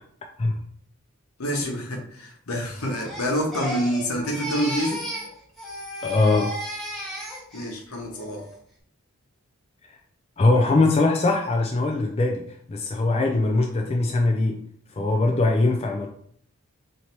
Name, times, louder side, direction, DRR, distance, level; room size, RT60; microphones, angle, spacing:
voice 1, 1.4-5.0 7.5-8.4, equal, 75° left, 1 dB, 1.0 m, -27 dB
Crying sobbing, 2.8-5.3 5.6-7.8 8.2-8.6, equal, ahead, 0.9 m, -34 dB
voice 2, 6.0-6.5 10.4-14.6 15.0-16.1, left 2 dB, 25° left, 2 dB, 0.3 m, -21 dB
3.2 x 2.8 x 4.3 m, 0.62 s
head